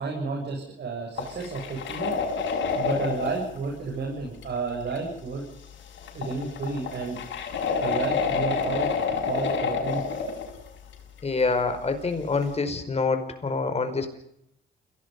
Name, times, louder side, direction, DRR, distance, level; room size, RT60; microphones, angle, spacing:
voice 1, 0.0-2.2 2.8-5.4 6.1-7.2 7.8-8.9 9.2-10.0, right 4 dB, 60° right, -1 dB, 7.9 m, -31 dB
sound 1, 1.2-3.6 4.4-4.5 4.9-5.0 5.6-5.7 5.9-10.7 10.9-11.2 11.7-11.8 12.4-12.5, left 5 dB, 70° left, 6.1 m, -28 dB
voice 2, 11.2-14.1, left 4 dB, 30° left, 7 dB, 5.0 m, -26 dB
29.0 x 18.0 x 5.6 m, 0.76 s
cardioid pair, 90°, 20 cm